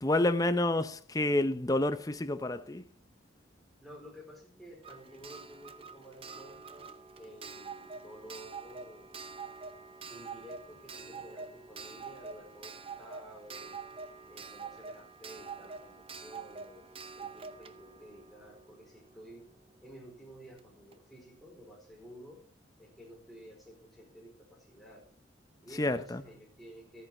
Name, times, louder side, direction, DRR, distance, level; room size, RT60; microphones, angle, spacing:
voice 1, 0.0-2.8 25.8-26.2, left 1 dB, 20° left, 0.6 m, -29 dB
voice 2, 3.8-6.9 7.2-9.2 10.1-13.8 14.3-16.9 17.1-19.5 19.8-22.4 22.8-25.1 25.6-27.0, equal, ahead, 4.4 m, -52 dB
Clock, 4.8-19.4 20.6-20.7 20.9-21.0, right 5 dB, 30° right, 0.7 m, -46 dB
13.5 x 9.2 x 4.3 m
head